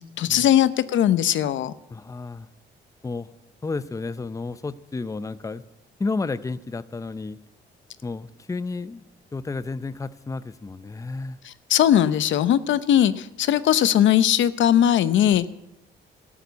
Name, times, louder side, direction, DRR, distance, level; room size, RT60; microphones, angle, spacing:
voice 1, 0.0-1.7 11.5-15.5, left 10 dB, 70° left, 15 dB, 0.8 m, -20 dB
voice 2, 1.9-2.5 3.0-3.3 3.6-5.6 6.0-7.4 8.0-9.1 9.3-11.4, left 3 dB, 15° left, 15 dB, 0.6 m, -31 dB
13.5 x 11.0 x 8.3 m, 0.84 s
cardioid pair, 90°, 20 cm